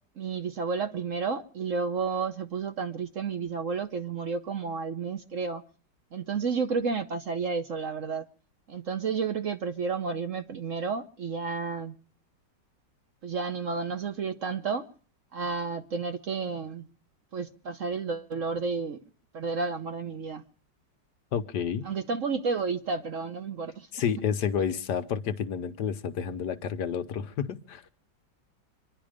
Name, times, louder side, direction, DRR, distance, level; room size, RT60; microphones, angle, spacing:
voice 1, 0.2-5.6 6.1-8.2 8.7-12.0 13.2-14.9 15.3-16.9 17.3-19.0 19.3-20.4 21.8-23.9, right 5 dB, 55° right, 1.1 m, -31 dB
voice 2, 21.3-21.9 23.9-27.8, left 7 dB, 70° left, 1.5 m, -30 dB
25.5 x 11.0 x 5.1 m
omnidirectional pair, 2.0 m